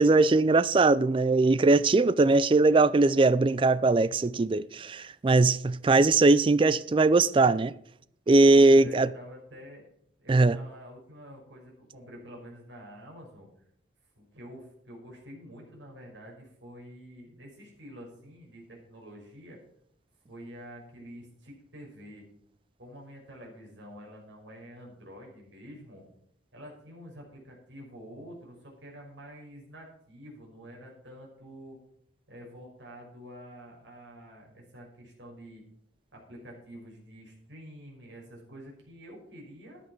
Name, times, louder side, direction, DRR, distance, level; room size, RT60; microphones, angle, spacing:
voice 1, 0.0-7.7 8.3-9.1 10.3-10.6, right 3 dB, 30° right, 0.4 m, -21 dB
voice 2, 8.5-9.9 10.2-13.5 14.2-19.6 20.3-22.2 22.8-26.0 26.5-31.8 32.3-35.6 36.1-39.8, equal, 80° right, 5.8 m, -47 dB
14.0 x 10.5 x 4.6 m
head